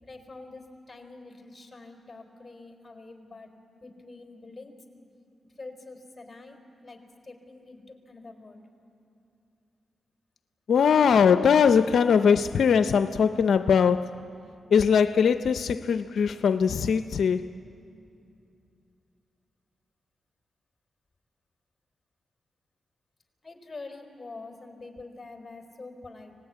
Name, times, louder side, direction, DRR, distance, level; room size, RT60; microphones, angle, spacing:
voice 1, 0.0-3.5 3.8-4.8 5.6-8.6 23.4-26.3, left 3 dB, 25° left, 4.5 m, -45 dB
voice 2, 10.7-14.2 14.7-17.5, left 6 dB, 75° left, 0.5 m, -21 dB
24.5 x 19.5 x 9.6 m
cardioid pair, 55°, 0 cm